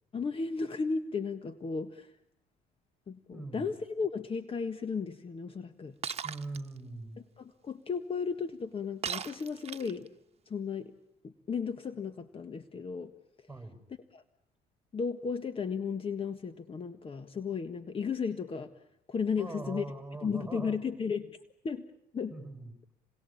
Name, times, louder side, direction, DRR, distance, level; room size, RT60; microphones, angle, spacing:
voice 1, 0.1-2.1 3.1-6.0 7.4-10.1 10.5-10.9 11.2-13.1 14.1-14.2 14.9-18.7 19.1-19.8 20.2-21.4 21.6-21.9 22.1-22.3, left 5 dB, 35° left, 10 dB, 1.6 m, -34 dB
voice 2, 3.3-3.7 6.2-7.2 13.5-13.8 19.4-20.8 22.3-22.9, right 2 dB, 5° right, 9 dB, 6.4 m, -42 dB
Shatter, 6.0-6.6 9.0-10.1, right 7 dB, 35° right, 1.4 m, -37 dB
28.5 x 22.0 x 8.7 m, 0.74 s
cardioid pair, 110°, 17 cm